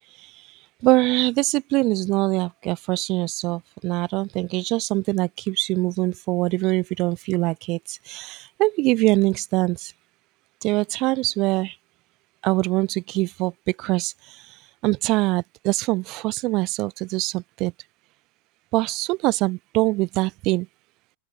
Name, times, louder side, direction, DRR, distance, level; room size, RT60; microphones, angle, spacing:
voice 1, 0.8-9.9 10.6-11.8 12.4-14.4 14.8-17.7 18.7-20.7, right 22 dB, 40° right, 1.2 m, -23 dB
open air
figure-of-eight pair, 95°, 0 cm